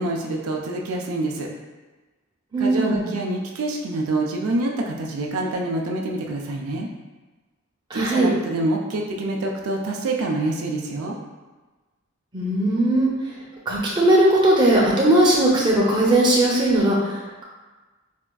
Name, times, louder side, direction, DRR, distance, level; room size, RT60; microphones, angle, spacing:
voice 1, 0.0-1.5 2.6-6.9 7.9-11.2, right 2 dB, 85° right, 0 dB, 0.4 m, -26 dB
voice 2, 2.5-3.1 7.9-8.3 12.3-13.3 13.7-17.4, right 1 dB, 20° right, -5 dB, 0.6 m, -19 dB
4.3 x 2.3 x 2.2 m, 1.2 s
head